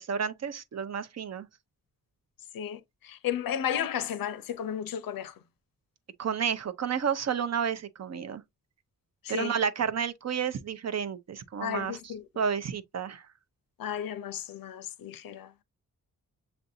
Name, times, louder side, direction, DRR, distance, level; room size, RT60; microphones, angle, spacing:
voice 1, 0.0-1.5 6.2-8.4 9.3-12.0 12.4-13.2, right 7 dB, 50° right, 0.6 m, -31 dB
voice 2, 2.5-5.3 9.2-9.6 11.6-12.3 13.8-15.6, left 9 dB, 90° left, 0.6 m, -33 dB
6.8 x 2.6 x 2.6 m
wide cardioid pair, 135°, 33 cm